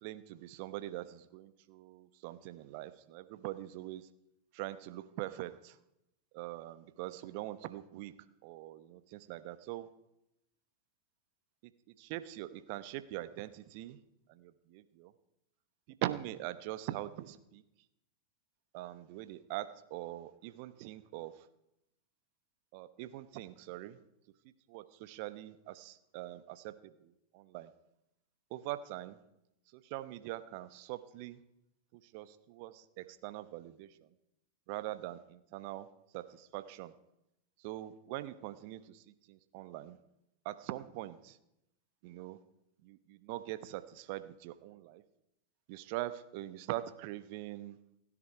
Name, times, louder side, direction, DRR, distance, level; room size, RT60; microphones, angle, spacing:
voice 1, 0.0-4.0 4.5-5.7 6.3-8.1 8.4-9.9 12.0-14.0 14.3-15.1 16.0-17.6 18.7-21.3 22.7-24.0 24.7-27.7 28.5-29.2 29.7-31.4 32.1-34.1 34.7-35.9 36.1-36.9 37.6-40.0 40.4-41.4 42.0-42.4 42.8-45.0 45.7-47.8, right 15 dB, 45° right, 13 dB, 1.0 m, -43 dB
29.0 x 10.0 x 4.6 m, 0.85 s
figure-of-eight pair, 90°, 0 cm